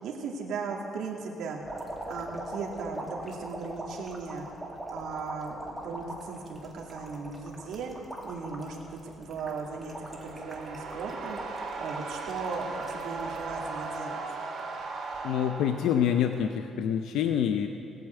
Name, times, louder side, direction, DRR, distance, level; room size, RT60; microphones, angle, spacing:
voice 1, 0.0-1.6 2.1-4.5 4.9-7.9 8.2-11.4 11.8-14.2, right 4 dB, 70° right, -1 dB, 2.4 m, -37 dB
sound 1, 1.6-14.0 14.4-15.2 16.2-16.3, right 1 dB, ahead, 2.3 m, -42 dB
sound 2, 9.4-16.5, right 4 dB, 50° right, 2.8 m, -38 dB
voice 2, 15.2-17.7, left 9 dB, 80° left, 6 dB, 0.7 m, -26 dB
18.0 x 9.4 x 8.1 m, 2.7 s
cardioid pair, 145°, 0 cm